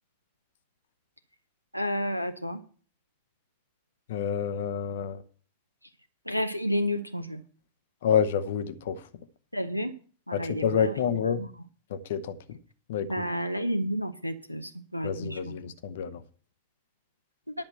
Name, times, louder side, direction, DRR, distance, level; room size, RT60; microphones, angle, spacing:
voice 1, 1.7-2.6 6.3-7.4 9.5-9.9 10.3-11.5 13.1-15.5, equal, 90° left, 0.7 m, -31 dB
voice 2, 4.1-5.2 8.0-9.0 10.3-11.4 11.9-12.3 12.9-13.2 15.0-16.2, left 7 dB, 55° left, 0.9 m, -28 dB
10.5 x 5.8 x 7.9 m
figure-of-eight pair, 90°, 0 cm